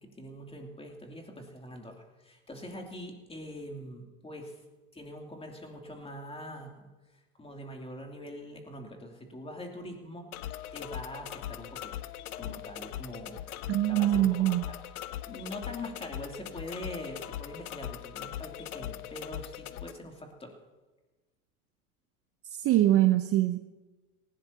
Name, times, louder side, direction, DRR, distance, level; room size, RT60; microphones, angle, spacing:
voice 1, 0.0-4.6 4.9-6.7 7.1-10.3 10.7-11.9 12.4-13.5 13.9-20.6, left 1 dB, 15° left, 2 dB, 2.7 m, -43 dB
sound 1, 10.3-19.9, left 12 dB, 80° left, 0.7 m, -40 dB
voice 2, 13.7-14.6 22.5-23.6, right 14 dB, 35° right, 9 dB, 0.7 m, -24 dB
18.5 x 16.0 x 2.8 m, 1.2 s
hypercardioid pair, 95°, 43 cm